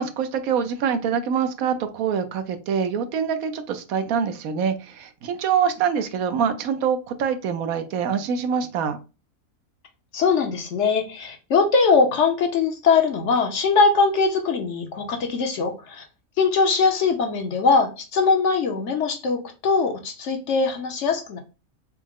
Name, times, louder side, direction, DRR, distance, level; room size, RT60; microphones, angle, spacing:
voice 1, 0.0-9.0, right 7 dB, 75° right, 1.0 m, -25 dB
voice 2, 10.1-16.0 16.4-21.4, left 4 dB, 60° left, 0.9 m, -21 dB
4.6 x 2.0 x 3.5 m
omnidirectional pair, 1.5 m